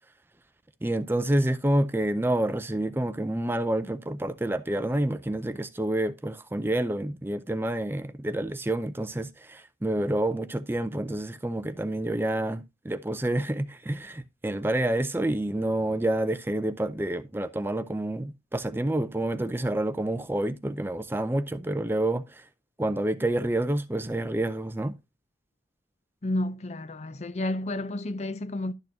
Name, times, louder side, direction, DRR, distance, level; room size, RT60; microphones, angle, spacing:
voice 1, 0.8-22.5 22.8-25.0, right 1 dB, 15° right, 0.5 m, -28 dB
voice 2, 26.2-28.7, left 1 dB, 40° left, 0.5 m, -31 dB
12.0 x 6.5 x 2.7 m
head